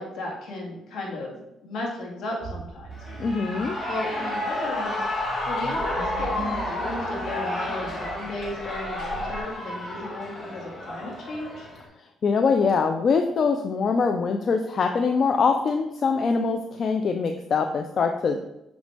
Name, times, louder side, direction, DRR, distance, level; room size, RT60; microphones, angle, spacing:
voice 1, 0.0-3.2 3.9-5.0 5.5-11.7, left 2 dB, 75° left, -2 dB, 2.1 m, -35 dB
sound 1, 2.4-9.4, right 4 dB, 55° right, 0.6 m, -40 dB
Shout / Cheering, 2.9-11.9, left 1 dB, 30° left, 1.9 m, -31 dB
voice 2, 3.2-3.8 12.2-18.4, left 5 dB, 50° left, 5 dB, 0.5 m, -23 dB
6.2 x 5.1 x 3.4 m, 0.89 s
cardioid pair, 90°, 0 cm